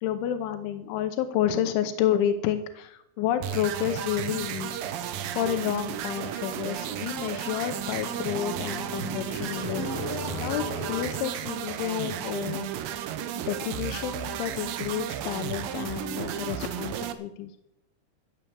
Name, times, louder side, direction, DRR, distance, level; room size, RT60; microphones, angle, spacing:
voice 1, 0.0-4.7 5.4-9.9 10.4-12.7 13.5-17.5, left 10 dB, 90° left, 9 dB, 3.3 m, -30 dB
sound 1, 3.4-17.1, right 10 dB, 80° right, 2.0 m, -33 dB
sound 2, 3.6-11.1, left 3 dB, 60° left, 3.7 m, -40 dB
14.0 x 8.4 x 7.5 m, 0.83 s
omnidirectional pair, 5.3 m